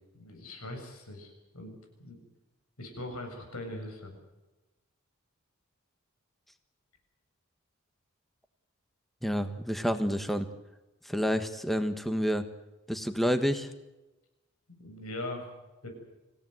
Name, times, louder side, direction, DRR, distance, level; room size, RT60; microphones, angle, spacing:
voice 1, 0.1-2.2 2.8-4.1 14.8-15.5 15.8-15.9, left 1 dB, 85° left, 5 dB, 7.4 m, -41 dB
voice 2, 9.2-10.5 11.0-12.4 12.9-13.7, equal, ahead, 8 dB, 1.4 m, -29 dB
26.0 x 17.0 x 8.0 m, 1.0 s
head